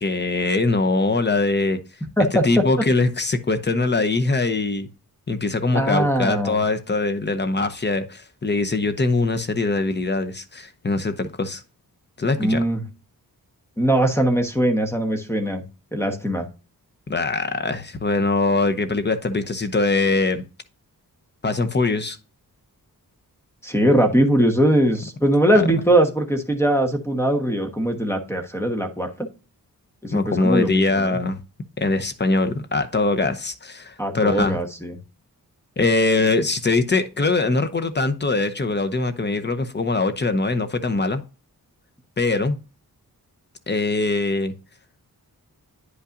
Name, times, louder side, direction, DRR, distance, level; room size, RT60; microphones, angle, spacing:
voice 1, 0.0-1.8 2.4-4.9 5.3-11.6 12.2-12.6 17.1-20.4 21.4-22.2 25.5-25.6 30.1-31.4 31.8-34.6 35.8-41.2 42.2-42.6 43.7-44.5, left 3 dB, 30° left, 0.8 m, -22 dB
voice 2, 2.2-2.6 5.7-6.6 12.4-12.8 13.8-15.6 15.9-16.5 23.6-29.3 30.0-31.2 34.0-35.0, right 1 dB, 5° left, 1.1 m, -21 dB
9.6 x 5.5 x 2.5 m
wide cardioid pair, 105°, 36 cm